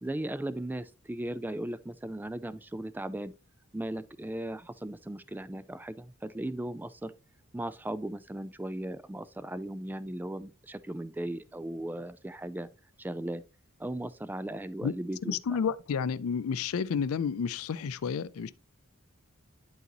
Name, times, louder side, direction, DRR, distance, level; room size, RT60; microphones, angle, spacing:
voice 1, 0.0-3.3 3.7-7.1 7.5-12.7 13.0-13.4 13.8-15.6, right 1 dB, 10° right, 0.3 m, -37 dB
voice 2, 15.2-18.5, left 6 dB, 85° left, 0.4 m, -31 dB
11.0 x 4.0 x 2.9 m
head